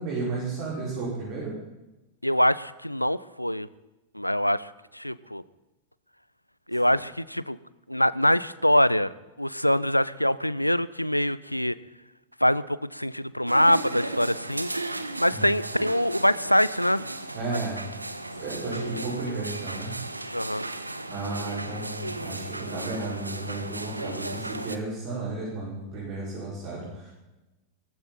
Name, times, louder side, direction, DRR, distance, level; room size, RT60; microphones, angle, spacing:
voice 1, 0.0-1.6 15.3-15.5 17.3-17.8 18.3-19.9 21.1-27.1, right 3 dB, 45° right, -6 dB, 5.6 m, -33 dB
voice 2, 2.2-3.7 4.1-5.4 6.7-7.6 7.9-9.1 9.4-11.8 12.4-14.7 15.2-17.0 20.3-20.7, equal, 90° left, 19 dB, 0.4 m, -24 dB
sound 1, 13.5-24.8, right 2 dB, 85° right, 0.9 m, -35 dB
17.0 x 15.0 x 4.3 m, 1.0 s
figure-of-eight pair, 90°, 0 cm